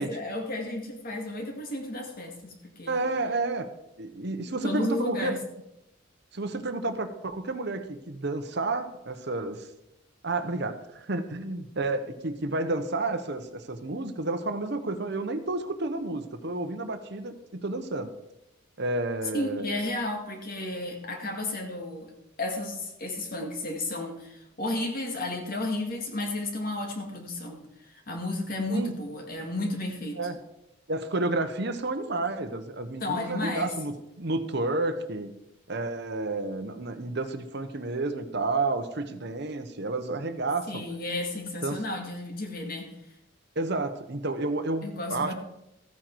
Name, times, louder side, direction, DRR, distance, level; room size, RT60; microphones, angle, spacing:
voice 1, 0.0-3.0 4.5-5.4 19.3-22.1 22.4-30.3 33.0-33.7 40.7-42.9 44.8-45.3, left 2 dB, 45° left, 2 dB, 2.1 m, -33 dB
voice 2, 2.9-3.7 4.0-5.4 6.3-9.7 10.2-18.1 18.8-19.8 28.7-28.9 30.2-30.4 30.9-35.3 35.7-40.8 41.6-41.8 43.6-45.3, right 2 dB, 50° right, 8 dB, 1.0 m, -31 dB
14.5 x 9.0 x 4.6 m, 0.85 s
head